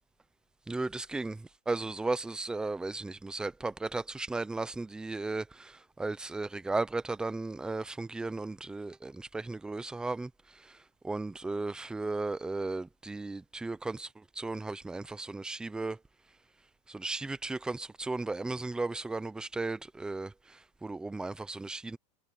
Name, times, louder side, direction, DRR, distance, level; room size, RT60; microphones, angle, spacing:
voice 1, 0.7-10.3 10.6-10.7 11.0-16.0 16.9-22.0, right 3 dB, 5° right, 0.6 m, -35 dB
supercardioid pair, 170°, 21 cm